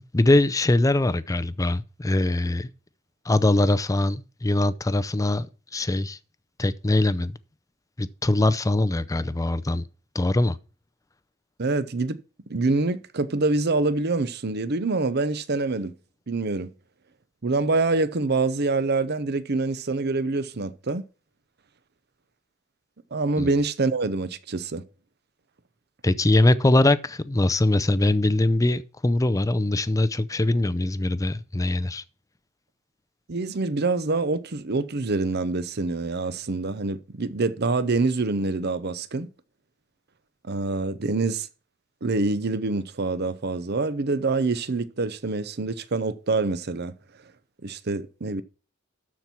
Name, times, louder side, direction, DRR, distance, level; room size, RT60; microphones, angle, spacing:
voice 1, 0.1-2.7 3.3-5.5 5.7-6.2 6.6-7.4 8.0-9.9 10.1-10.6 23.4-23.5 26.0-32.0, left 2 dB, 15° left, 0.5 m, -22 dB
voice 2, 11.6-12.2 12.5-15.9 16.3-16.7 17.4-21.0 23.1-24.8 33.3-39.3 40.5-41.5 42.0-46.9 47.6-48.4, right 3 dB, 55° right, 0.8 m, -25 dB
12.5 x 4.6 x 5.9 m
head